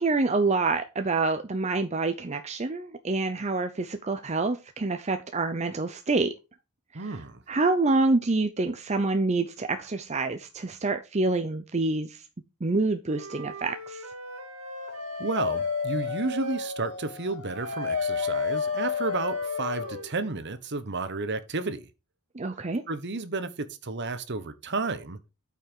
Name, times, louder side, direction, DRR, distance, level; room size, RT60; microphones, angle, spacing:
voice 1, 0.0-6.3 7.0-7.1 7.5-12.2 12.6-14.0 22.3-22.8, right 3 dB, 30° right, 0.7 m, -27 dB
voice 2, 6.9-7.4 15.2-21.9 22.9-25.2, right 3 dB, 50° right, 1.1 m, -32 dB
Wind instrument woodwind instrument, 13.1-16.7 17.5-20.1, right 3 dB, 70° right, 2.0 m, -41 dB
Dog, 14.5-20.1, left 6 dB, 55° left, 0.6 m, -31 dB
8.8 x 5.7 x 4.5 m
head